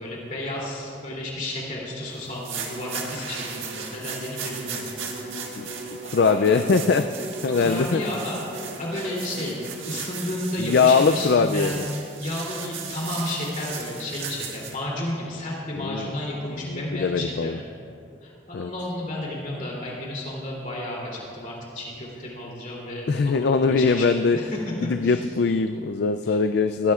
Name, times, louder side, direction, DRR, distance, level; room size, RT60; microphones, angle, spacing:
voice 1, 0.0-4.9 6.1-6.7 7.6-9.6 9.9-11.9 12.2-17.5 18.2-24.6 25.0-25.2 26.3-26.4, left 1 dB, 40° left, -4 dB, 3.0 m, -32 dB
sound 1, 2.2-14.7, right 6 dB, 85° right, 1.5 m, -37 dB
Bowed string instrument, 2.6-10.0, equal, 70° right, 2.1 m, -39 dB
voice 2, 6.1-8.0 10.6-11.8 15.8-16.1 16.6-17.6 18.5-18.7 23.1-24.4 24.8-26.9, left 4 dB, 55° left, 8 dB, 0.3 m, -21 dB
20.0 x 14.5 x 2.4 m, 2.5 s
head